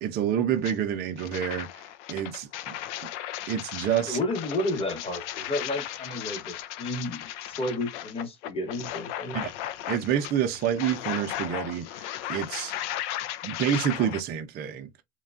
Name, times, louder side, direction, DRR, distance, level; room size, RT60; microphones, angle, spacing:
voice 1, 0.0-1.8 2.1-2.7 3.5-4.2 9.3-9.5 9.9-12.7 13.4-14.9, right 9 dB, 30° right, 0.4 m, -28 dB
sound 1, 0.6-0.7 1.2-14.2, left 12 dB, 70° left, 0.5 m, -36 dB
voice 2, 4.0-9.4, left 1 dB, 15° left, 1.0 m, -32 dB
3.1 x 2.2 x 2.4 m
supercardioid pair, 120°, 36 cm